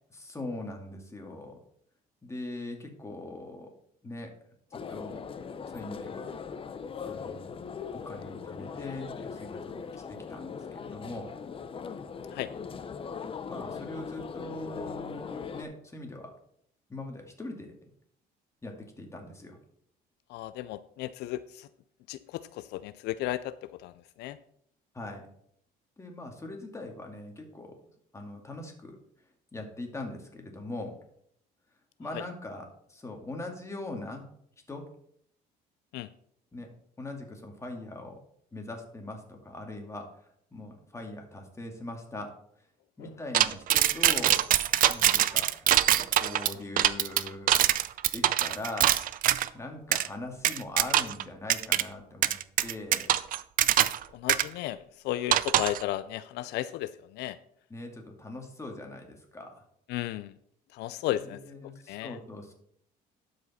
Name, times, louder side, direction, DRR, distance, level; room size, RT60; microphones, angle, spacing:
voice 1, 0.1-1.6 2.2-3.7 4.0-4.3 4.7-5.2 5.7-6.3 7.0-7.6 7.9-11.3 13.5-16.3 16.9-17.9 18.6-19.6 24.9-25.2 26.0-27.7 28.1-29.0 29.5-31.0 32.0-34.2 34.7-34.8 36.5-38.2 38.5-40.1 40.5-42.3 43.0-44.4 44.9-45.5 45.9-47.6 48.1-49.0 49.5-52.4 52.6-53.1 57.7-59.6 61.2-62.5, left 2 dB, 15° left, 2 dB, 2.1 m, -41 dB
sound 1, 4.7-15.6, left 6 dB, 35° left, 0.6 m, -40 dB
voice 2, 20.3-21.7 22.1-24.4 32.1-32.2 35.9-36.1 43.0-43.1 54.1-57.4 59.9-60.4 60.7-61.4 61.9-62.2, left 14 dB, 80° left, 14 dB, 0.4 m, -34 dB
sound 2, 43.3-49.5 49.9-50.1 50.4-51.2 51.5-51.8 52.2-54.0 54.3-54.4 55.3-55.8, right 12 dB, 55° right, 0.4 m, -23 dB
12.0 x 5.1 x 4.2 m, 0.68 s
cardioid pair, 110°, 17 cm